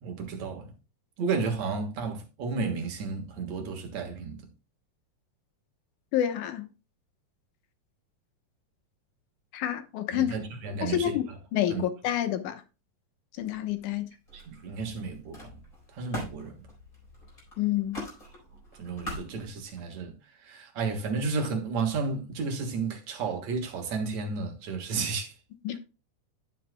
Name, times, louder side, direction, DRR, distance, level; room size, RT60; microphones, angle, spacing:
voice 1, 0.0-0.7 1.2-4.4 10.1-11.2 11.7-11.8 14.3-15.6 15.9-16.6 18.8-20.1 20.4-25.3, right 4 dB, 65° right, 2.6 m, -32 dB
voice 2, 6.1-6.7 9.5-10.3 10.8-11.3 11.5-12.6 13.4-14.1 17.6-18.0 25.6-25.8, left 12 dB, 75° left, 2.5 m, -28 dB
Camera, 13.4-14.0 14.3-19.8, left 1 dB, 25° left, 4.6 m, -44 dB
12.0 x 7.4 x 2.2 m
omnidirectional pair, 3.6 m